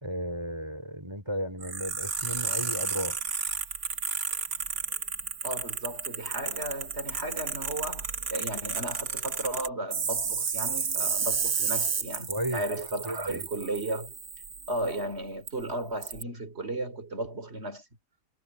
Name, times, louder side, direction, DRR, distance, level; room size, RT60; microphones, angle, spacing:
voice 1, 0.0-3.2 12.3-13.4, equal, 15° right, 3.0 m, -34 dB
sound 1, 1.6-15.0 15.5-15.6 16.0-16.2, right 6 dB, 60° right, 2.0 m, -32 dB
voice 2, 5.4-14.1 14.7-17.8, right 1 dB, 40° right, 3.7 m, -35 dB
omnidirectional pair, 1.7 m